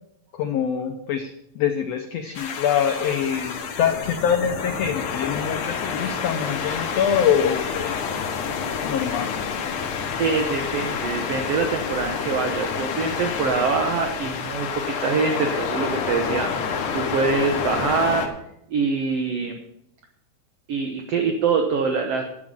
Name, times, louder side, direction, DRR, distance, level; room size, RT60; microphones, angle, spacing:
voice 1, 0.3-8.1 8.8-9.3, left 8 dB, 90° left, 6 dB, 1.4 m, -24 dB
sound 1, 2.3-18.3, left 6 dB, 65° left, 2.7 m, -28 dB
voice 2, 10.2-18.3 18.7-19.6 20.7-22.2, right 5 dB, 65° right, 4 dB, 1.6 m, -24 dB
11.5 x 9.6 x 5.3 m, 0.78 s
omnidirectional pair, 4.1 m